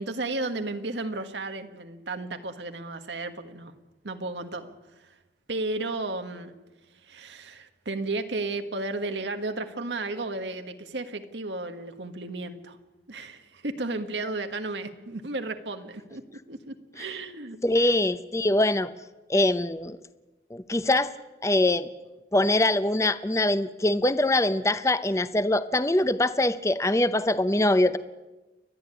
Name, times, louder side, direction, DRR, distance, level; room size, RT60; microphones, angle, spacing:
voice 1, 0.0-3.7 4.0-5.2 5.5-6.5 7.0-12.8 13.1-16.2 16.5-17.6, right 2 dB, 90° right, 7 dB, 1.5 m, -33 dB
voice 2, 17.6-18.9 19.3-20.0 20.5-21.1 21.4-21.9 22.3-28.0, left 1 dB, 15° left, 13 dB, 0.7 m, -23 dB
30.0 x 12.0 x 9.7 m, 1.1 s
head